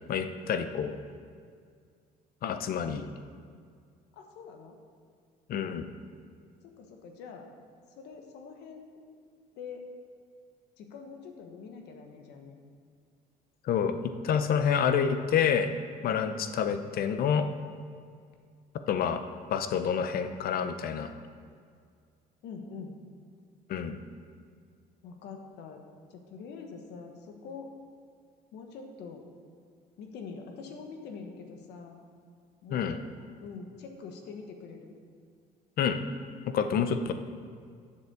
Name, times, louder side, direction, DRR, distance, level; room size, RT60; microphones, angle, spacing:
voice 1, 0.1-1.0 2.4-3.1 5.5-5.9 13.6-14.0 14.2-15.7 16.0-17.5 18.9-19.2 19.5-21.1 23.7-24.0 32.7-33.0 35.8-36.0 36.5-37.1, left 7 dB, 60° left, 9 dB, 0.7 m, -28 dB
voice 2, 4.1-4.8 6.6-7.5 8.0-9.1 9.6-9.8 10.8-12.6 22.4-22.9 25.0-25.8 26.1-27.7 28.5-29.2 30.0-32.0 32.6-32.9 33.4-34.9, left 5 dB, 80° left, 3 dB, 1.3 m, -44 dB
8.1 x 7.2 x 6.9 m, 2.1 s
cardioid pair, 110°, 17 cm